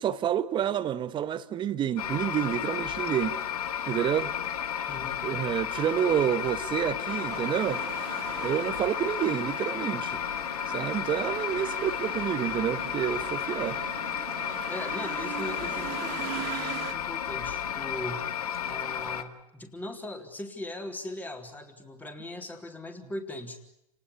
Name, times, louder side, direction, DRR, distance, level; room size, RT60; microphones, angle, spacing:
voice 1, 0.0-3.4 3.9-4.3 5.2-7.8 8.4-10.2 10.7-13.8, right 10 dB, 25° right, 1.4 m, -29 dB
sound 1, 2.0-19.2, left 9 dB, 70° left, 2.1 m, -33 dB
voice 2, 4.9-5.2 14.7-18.4 18.7-23.6, left 1 dB, 10° left, 3.7 m, -39 dB
sound 2, 7.1-16.9, right 12 dB, 45° right, 2.9 m, -41 dB
29.5 x 19.0 x 9.8 m
hypercardioid pair, 120°, 20 cm